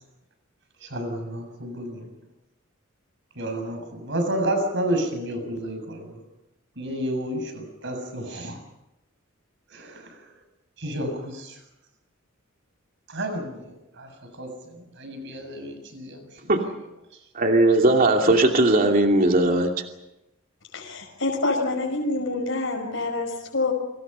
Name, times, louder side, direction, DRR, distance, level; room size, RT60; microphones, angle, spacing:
voice 1, 0.8-2.1 3.4-6.2 6.8-8.6 9.7-10.3 10.8-11.6 13.1-16.5, right 1 dB, 60° right, 6 dB, 7.2 m, -31 dB
voice 2, 17.3-19.9, right 2 dB, 45° right, 2 dB, 2.7 m, -19 dB
voice 3, 20.7-23.7, left 2 dB, 65° left, 1 dB, 5.4 m, -26 dB
29.5 x 25.5 x 5.6 m, 0.91 s
head